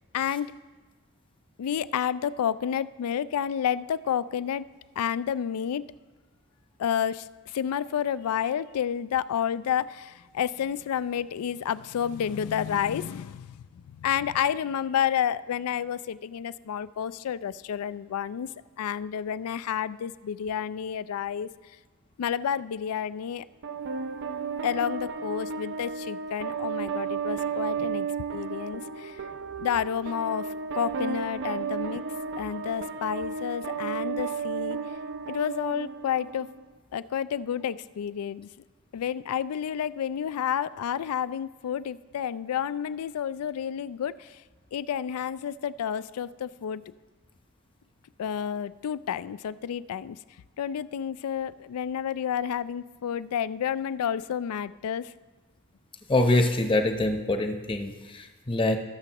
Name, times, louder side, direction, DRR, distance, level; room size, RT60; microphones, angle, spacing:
voice 1, 0.1-0.5 1.6-4.7 5.0-5.8 6.8-7.3 7.5-18.5 18.8-21.5 22.2-23.4 24.6-28.1 28.3-29.2 29.6-30.5 30.7-32.0 32.4-34.8 35.3-36.5 36.9-38.5 38.9-44.3 44.7-46.8 48.2-50.2 50.6-55.1, left 8 dB, 75° left, 17 dB, 0.3 m, -30 dB
sound 1, 23.6-36.7, right 5 dB, 55° right, 0.5 m, -33 dB
voice 2, 56.1-58.8, left 2 dB, 25° left, 5 dB, 0.8 m, -24 dB
18.5 x 6.8 x 2.9 m, 1.3 s
head